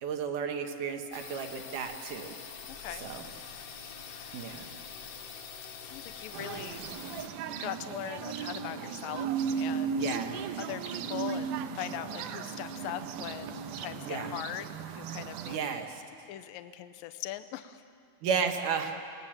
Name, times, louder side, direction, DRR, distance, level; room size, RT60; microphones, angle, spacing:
voice 1, 0.0-2.3 3.0-3.3 4.3-4.7 6.4-6.6 10.0-10.4 14.1-14.4 15.4-16.0 18.2-19.0, right 6 dB, 65° right, 5 dB, 2.4 m, -33 dB
sound 1, 1.1-7.3, left 6 dB, 55° left, 2.2 m, -45 dB
voice 2, 4.1-4.4 5.0-5.1 5.8-6.8 7.6-9.3 9.6-10.2 10.6-15.8 16.3-17.8, left 13 dB, 80° left, 11 dB, 2.2 m, -41 dB
sound 2, 6.3-15.6, right 9 dB, 80° right, 1.8 m, -41 dB
sound 3, 6.9-14.4, right 5 dB, 15° right, 1.4 m, -37 dB
26.5 x 19.0 x 7.4 m, 2.4 s
omnidirectional pair, 4.6 m